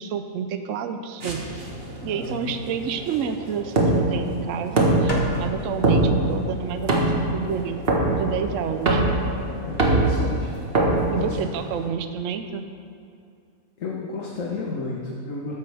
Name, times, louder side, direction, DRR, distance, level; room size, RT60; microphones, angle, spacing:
voice 1, 0.0-1.4 2.0-9.0 11.1-12.7, right 7 dB, 65° right, 8 dB, 1.0 m, -29 dB
sound 1, 1.2-11.9, right 2 dB, 45° right, 1.5 m, -24 dB
voice 2, 2.1-2.6 9.5-10.5 11.0-11.3 13.8-15.5, left 3 dB, 65° left, -3 dB, 1.5 m, -32 dB
sound 2, 5.1-11.3, left 2 dB, 35° left, 1.4 m, -36 dB
13.5 x 10.5 x 3.5 m, 2.5 s
omnidirectional pair, 1.5 m